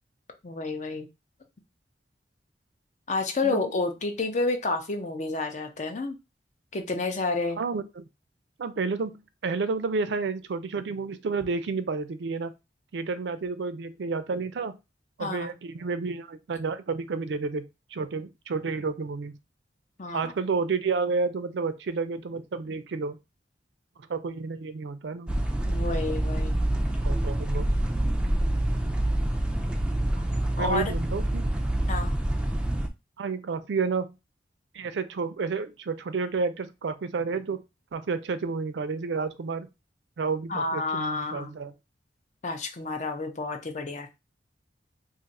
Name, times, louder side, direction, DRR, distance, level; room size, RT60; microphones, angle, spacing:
voice 1, 0.4-1.1 3.1-6.2 6.7-7.6 15.2-15.5 20.0-20.3 25.7-26.6 30.6-30.9 31.9-32.1 40.5-41.5 42.4-44.2, left 3 dB, 40° left, 0.6 m, -30 dB
voice 2, 7.6-8.1 8.6-12.5 12.9-14.7 15.2-19.3 20.1-23.2 24.1-25.4 27.0-27.7 30.5-31.4 33.2-34.1 34.7-37.6 37.9-39.7 40.2-41.7, right 4 dB, 75° right, 0.4 m, -30 dB
sound 1, 25.3-32.9, right 1 dB, 5° right, 0.3 m, -26 dB
2.5 x 2.5 x 4.0 m
head